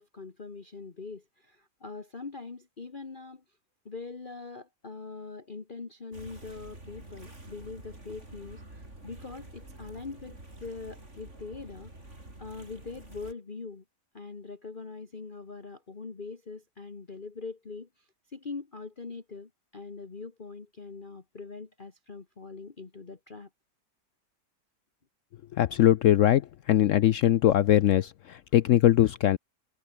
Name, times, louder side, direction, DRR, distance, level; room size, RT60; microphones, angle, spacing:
voice 1, 0.0-3.4 3.8-13.8 14.1-23.5, left 4 dB, 30° left, 1.6 m, -42 dB
sound 1, 6.1-13.3, right 2 dB, 40° right, 6.5 m, -48 dB
voice 2, 25.6-26.4 26.7-29.4, left 12 dB, 70° left, 0.7 m, -21 dB
omnidirectional pair, 1.8 m